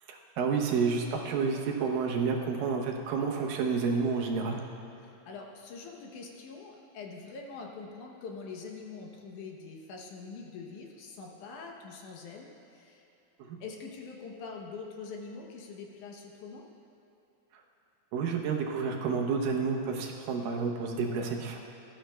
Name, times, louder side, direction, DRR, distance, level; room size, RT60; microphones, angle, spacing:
voice 1, 0.1-4.6 13.4-13.6 18.1-21.6, right 5 dB, 80° right, 1 dB, 2.5 m, -30 dB
voice 2, 5.0-13.1 13.6-16.6, left 4 dB, 70° left, 0 dB, 2.2 m, -44 dB
17.5 x 13.0 x 2.2 m, 2.8 s
omnidirectional pair, 3.9 m